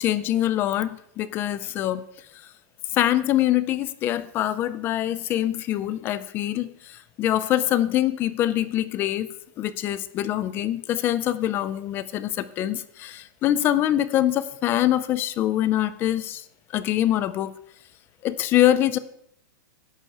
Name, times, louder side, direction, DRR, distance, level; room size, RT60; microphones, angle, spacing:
voice 1, 0.0-2.0 2.9-16.4 16.7-17.5 18.2-19.0, left 12 dB, 20° left, 16 dB, 0.4 m, -24 dB
11.0 x 6.8 x 4.8 m, 0.71 s
supercardioid pair, 165°, 11 cm